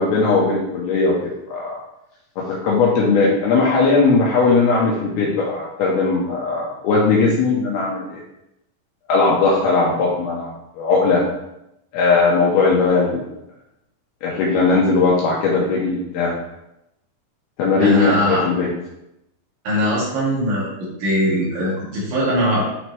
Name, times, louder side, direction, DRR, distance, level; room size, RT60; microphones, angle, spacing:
voice 1, 0.0-1.8 2.4-8.2 9.1-11.2 11.9-13.2 14.2-16.3 17.6-18.7, left 4 dB, 75° left, -4 dB, 2.4 m, -18 dB
voice 2, 17.8-18.4 19.6-20.7 21.0-22.7, equal, 60° right, -6 dB, 4.1 m, -20 dB
9.8 x 4.4 x 3.1 m, 0.86 s
omnidirectional pair, 5.9 m